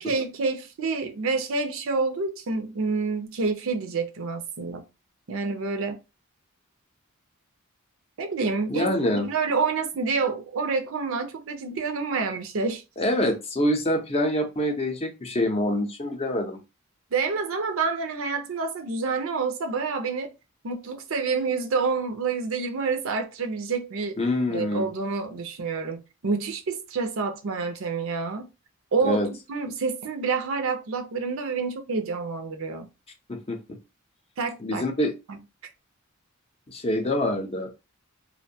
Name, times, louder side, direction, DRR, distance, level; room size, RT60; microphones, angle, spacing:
voice 1, 0.0-4.8 5.3-6.0 8.2-12.8 17.1-20.3 20.6-24.1 24.5-28.5 28.9-29.2 29.5-32.9 34.4-34.8, right 4 dB, 65° right, 0.5 m, -28 dB
voice 2, 8.7-9.3 13.0-16.6 24.2-24.9 29.0-29.3 33.3-33.6 34.6-35.1 36.7-37.7, left 1 dB, 30° left, 0.5 m, -25 dB
2.5 x 2.2 x 2.7 m
head